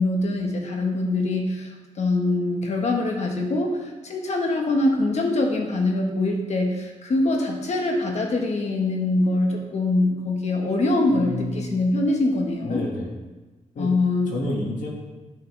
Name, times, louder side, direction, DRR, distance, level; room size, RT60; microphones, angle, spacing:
voice 1, 0.0-12.8 13.8-14.4, left 2 dB, 60° left, 2 dB, 1.3 m, -23 dB
voice 2, 11.1-11.8 12.6-13.1 13.7-13.9 14.3-14.9, left 2 dB, 75° left, -2 dB, 1.9 m, -29 dB
11.0 x 5.6 x 3.4 m, 1.2 s
wide cardioid pair, 125°, 13 cm